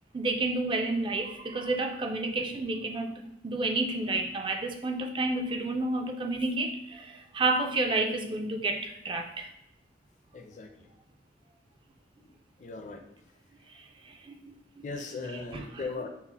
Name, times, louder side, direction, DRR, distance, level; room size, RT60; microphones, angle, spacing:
voice 1, 0.1-9.5 14.1-14.8 15.5-15.6, right 2 dB, 25° right, 0.3 m, -30 dB
voice 2, 10.3-10.9 12.2-13.0 14.8-16.1, left 3 dB, 40° left, 0.5 m, -39 dB
6.0 x 2.1 x 4.1 m
head